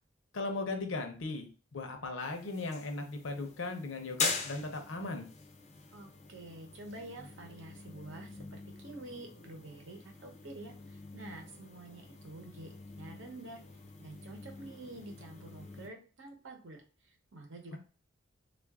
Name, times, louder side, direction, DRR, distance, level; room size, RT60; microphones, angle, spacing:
voice 1, 0.3-5.3, left 3 dB, 70° left, 4 dB, 0.7 m, -37 dB
sound 1, 2.2-15.9, left 4 dB, 35° left, 0.5 m, -43 dB
voice 2, 5.9-13.6 14.0-17.8, right 2 dB, 65° right, 3 dB, 0.9 m, -48 dB
3.6 x 2.5 x 3.5 m, 0.36 s
head